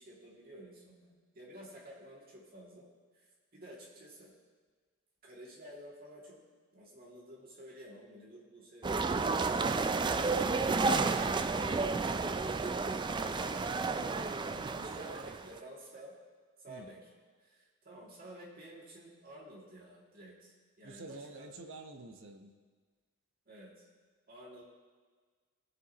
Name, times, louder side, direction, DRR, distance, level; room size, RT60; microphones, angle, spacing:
voice 1, 0.0-2.9 3.1-4.3 5.2-6.4 6.7-11.1 14.8-16.1 16.6-17.0 17.4-21.5 23.5-23.9 24.3-24.6, right 1 dB, 40° right, -4 dB, 2.5 m, -52 dB
sound 1, 8.8-15.6, right 4 dB, 20° right, 0.3 m, -31 dB
voice 2, 14.5-15.4 16.7-16.9 20.8-22.5, right 3 dB, 60° right, 4 dB, 1.0 m, -49 dB
19.0 x 7.7 x 3.0 m, 1.5 s
head